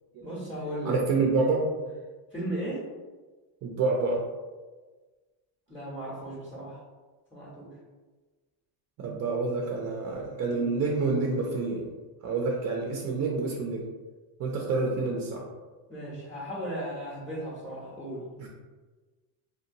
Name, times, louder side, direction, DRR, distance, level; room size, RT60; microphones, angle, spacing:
voice 1, 0.2-0.9 2.3-2.9 5.7-6.8 7.3-7.7 15.9-18.2, right 1 dB, 5° left, -8 dB, 0.6 m, -36 dB
voice 2, 0.8-1.7 3.6-4.3 9.0-11.9 12.2-13.9 14.4-15.4 18.4-18.5, right 3 dB, 40° right, -1 dB, 0.4 m, -28 dB
2.8 x 2.2 x 2.5 m, 1.3 s
supercardioid pair, 105°, 45 cm